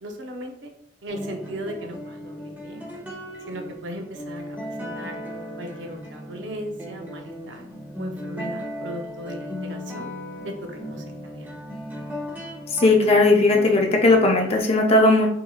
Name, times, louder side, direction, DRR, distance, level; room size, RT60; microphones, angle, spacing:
voice 1, 0.0-0.7 1.0-2.9 3.5-5.2 5.6-7.7 8.0-10.1 10.4-11.6, right 1 dB, 70° right, 4 dB, 0.6 m, -37 dB
sound 1, 1.1-14.6, equal, 10° right, 0.7 m, -36 dB
voice 2, 12.7-15.3, left 2 dB, 30° left, 2 dB, 0.6 m, -17 dB
4.1 x 2.8 x 2.4 m, 0.69 s
head